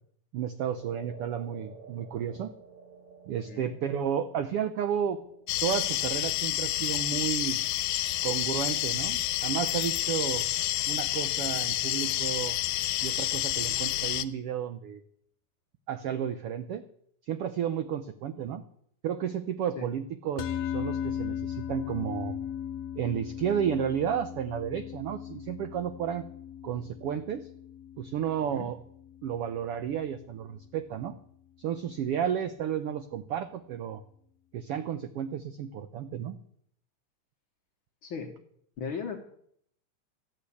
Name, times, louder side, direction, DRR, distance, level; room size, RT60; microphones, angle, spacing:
voice 1, 0.3-2.5 3.3-5.2 5.6-7.6 8.2-10.5 10.9-12.6 13.0-15.0 15.9-16.8 17.3-18.6 19.0-22.4 23.0-26.2 26.6-27.5 28.0-28.8 29.2-31.1 31.6-34.0 34.5-36.4, right 9 dB, 80° right, 10 dB, 1.3 m, -32 dB
sound 1, 0.8-9.3, right 3 dB, 65° right, 3.4 m, -52 dB
sound 2, 5.5-14.2, left 15 dB, 85° left, 2.2 m, -29 dB
sound 3, 20.4-30.8, left 10 dB, 70° left, 1.7 m, -38 dB
voice 2, 28.4-28.7 38.0-38.3 38.8-39.2, left 5 dB, 55° left, 5 dB, 1.6 m, -37 dB
13.5 x 8.3 x 8.4 m, 0.66 s
omnidirectional pair, 3.5 m